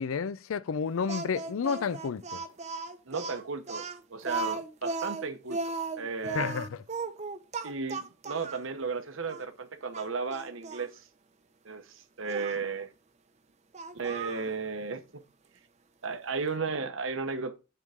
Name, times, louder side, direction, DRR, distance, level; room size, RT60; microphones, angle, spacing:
voice 1, 0.0-2.4 6.3-6.8, left 6 dB, 75° left, 0.4 m, -31 dB
Speech, 1.1-8.7 9.3-9.4 9.9-10.9 12.3-12.6 13.7-14.5, right 4 dB, 30° right, 0.6 m, -36 dB
voice 2, 3.1-6.6 7.6-11.0 11.6-12.9 13.9-15.0 16.0-17.6, right 4 dB, 65° right, 0.9 m, -35 dB
6.8 x 3.6 x 6.3 m
head